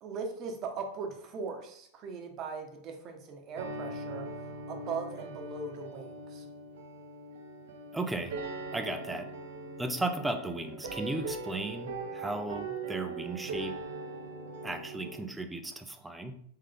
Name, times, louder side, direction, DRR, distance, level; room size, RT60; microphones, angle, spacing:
voice 1, 0.0-4.3 4.7-6.5, right 5 dB, 40° right, 4 dB, 0.9 m, -39 dB
sound 1, 3.6-15.2, right 3 dB, 75° right, 0.6 m, -41 dB
voice 2, 7.9-8.4 8.7-9.3 9.8-13.8 14.6-16.4, right 2 dB, 10° right, 7 dB, 0.5 m, -35 dB
3.8 x 3.1 x 3.4 m, 0.66 s
hypercardioid pair, 110°, 0 cm